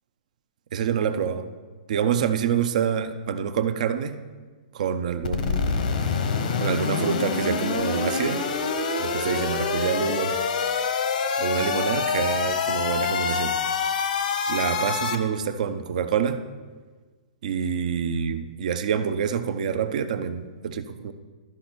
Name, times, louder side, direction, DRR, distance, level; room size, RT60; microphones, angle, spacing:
voice 1, 0.7-1.5 1.9-4.2 4.7-5.8 6.6-8.4 9.0-10.4 11.4-13.6 14.5-16.4 17.4-21.1, right 7 dB, 65° right, 10 dB, 0.7 m, -26 dB
sound 1, 5.2-15.2, left 5 dB, 75° left, 1.0 m, -26 dB
13.0 x 5.1 x 4.4 m, 1.4 s
hypercardioid pair, 145°, 4 cm